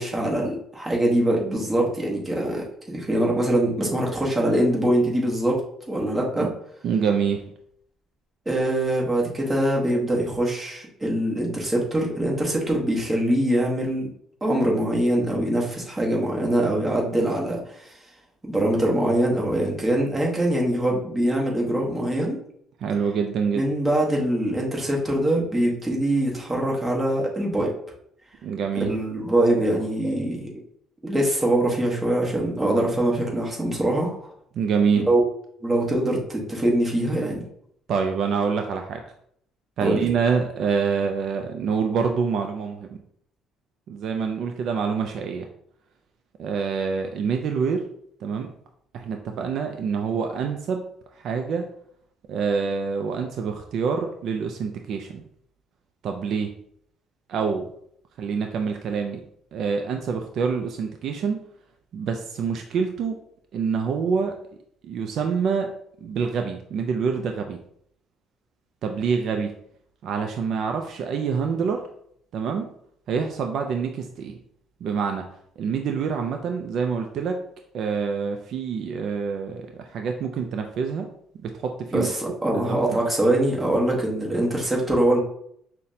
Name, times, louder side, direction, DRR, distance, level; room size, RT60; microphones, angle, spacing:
voice 1, 0.0-5.6 5.9-6.5 8.5-14.1 14.4-17.9 18.4-22.4 23.5-27.7 28.9-30.5 31.0-34.3 35.1-35.3 35.6-37.4 39.8-40.0 81.9-85.2, right 1 dB, 15° right, -2 dB, 1.0 m, -23 dB
voice 2, 6.8-7.4 22.8-23.6 28.4-28.9 34.5-35.1 37.9-39.0 39.8-42.9 43.9-45.5 46.4-47.9 48.2-48.5 48.9-50.8 51.2-51.6 52.3-55.2 56.0-56.5 57.3-57.7 58.2-59.2 59.5-61.4 61.9-63.2 63.5-64.4 64.8-65.7 66.0-67.6 68.8-69.5 70.0-71.8 72.3-72.7 73.1-74.4 74.8-75.2 75.6-77.4 77.7-81.1 81.4-82.1 82.5-83.0, right 6 dB, 60° right, 4 dB, 0.3 m, -26 dB
5.6 x 2.1 x 2.7 m, 0.68 s
cardioid pair, 115°, 0 cm